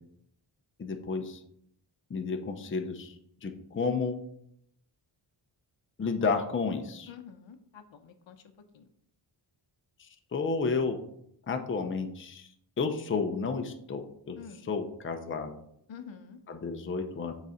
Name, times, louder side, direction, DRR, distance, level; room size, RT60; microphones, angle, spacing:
voice 1, 0.8-1.4 2.1-3.1 3.4-4.2 6.0-7.1 10.0-11.0 11.5-12.5 12.8-14.4 14.6-15.5 16.5-17.3, left 4 dB, 25° left, 5 dB, 0.6 m, -31 dB
voice 2, 7.1-8.4 8.7-8.9 14.4-14.7 15.9-16.4, left 7 dB, 70° left, 9 dB, 0.7 m, -48 dB
6.9 x 4.0 x 4.9 m, 0.71 s
wide cardioid pair, 160°, 48 cm